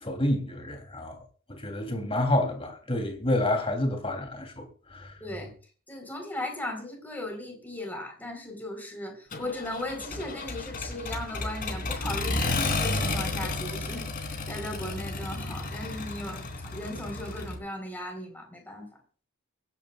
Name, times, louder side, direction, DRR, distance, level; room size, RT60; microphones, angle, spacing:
voice 1, 0.0-1.2 1.5-5.1, left 1 dB, 25° left, 3.1 m, -29 dB
voice 2, 5.2-5.5 5.9-18.9, left 1 dB, 10° left, 4.0 m, -37 dB
Accelerating revving vroom, 9.3-17.6, left 2 dB, 45° left, 3.2 m, -32 dB
25.0 x 10.5 x 2.4 m
head